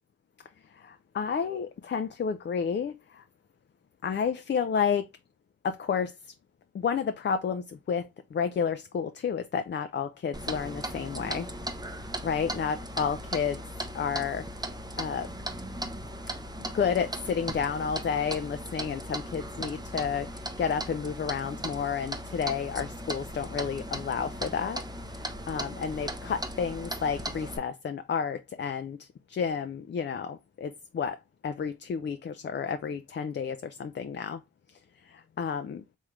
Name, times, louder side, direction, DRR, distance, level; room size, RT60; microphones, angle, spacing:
voice 1, 0.7-3.2 4.0-5.1 5.6-6.3 6.7-11.5 12.2-13.6 13.9-14.5 15.0-15.3 16.7-24.8 25.1-34.4 34.7-35.8, left 6 dB, 35° left, 0.4 m, -31 dB
Clock, 10.3-27.6, right 1 dB, 10° right, 0.6 m, -37 dB
3.6 x 3.1 x 3.1 m
cardioid pair, 75°, 34 cm